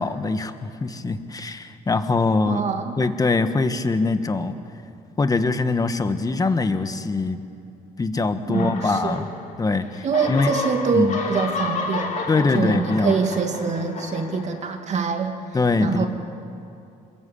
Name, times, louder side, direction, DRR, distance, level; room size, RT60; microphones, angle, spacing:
voice 1, 0.0-2.6 3.0-4.5 5.2-7.4 8.0-9.3 9.6-10.5 10.9-11.2 12.3-13.1 15.5-16.1, left 3 dB, 20° left, 9 dB, 1.5 m, -23 dB
voice 2, 2.5-2.9 8.5-9.2 10.0-15.4 15.8-16.1, right 5 dB, 45° right, 4 dB, 2.6 m, -25 dB
sound 1, 8.5-9.7 9.9-14.9, left 4 dB, 45° left, 3.4 m, -31 dB
26.5 x 22.0 x 8.6 m, 2.6 s
cardioid pair, 110°, 17 cm